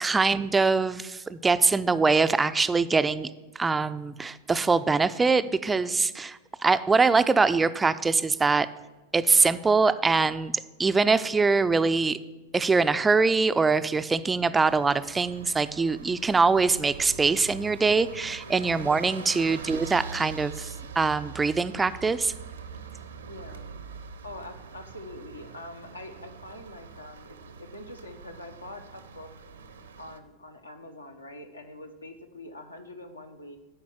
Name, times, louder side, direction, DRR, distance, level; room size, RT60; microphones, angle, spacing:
voice 1, 0.0-3.3 3.6-8.7 9.1-10.5 10.8-12.2 12.5-22.3, right 4 dB, 15° right, 12 dB, 0.4 m, -23 dB
sound 1, 14.6-30.2, right 5 dB, 70° right, 0.7 m, -43 dB
voice 2, 18.4-18.8 19.1-19.5 23.3-23.7 24.2-29.3 30.0-33.6, left 1 dB, 80° left, 5 dB, 0.9 m, -44 dB
10.0 x 4.6 x 7.2 m, 1.1 s
figure-of-eight pair, 90°, 0 cm